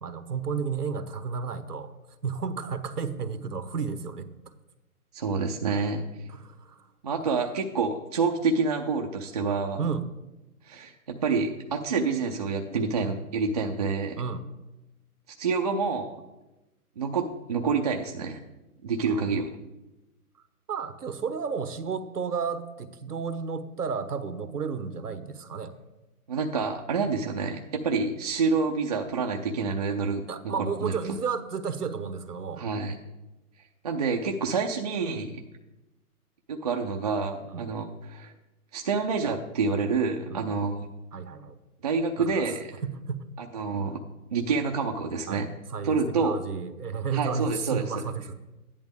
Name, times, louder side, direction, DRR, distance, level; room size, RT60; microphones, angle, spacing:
voice 1, 0.0-1.9 2.2-4.3 6.3-6.9 7.2-7.4 9.8-10.0 14.2-14.4 19.1-19.3 20.7-25.7 30.3-32.6 37.5-37.7 40.3-40.5 41.1-41.6 42.2-42.5 42.8-43.2 45.3-48.3, right 5 dB, 85° right, 11 dB, 1.3 m, -32 dB
voice 2, 5.1-6.0 7.0-9.8 10.6-14.2 15.4-16.2 17.0-18.4 18.8-19.5 26.3-30.9 32.6-32.9 33.8-35.4 36.5-38.3 38.7-40.9 41.8-42.7 43.4-44.0 44.3-45.5 45.8-46.4 47.1-47.8, right 4 dB, 30° right, 1 dB, 0.5 m, -28 dB
14.0 x 10.5 x 3.6 m, 1.0 s
hypercardioid pair, 145°, 45 cm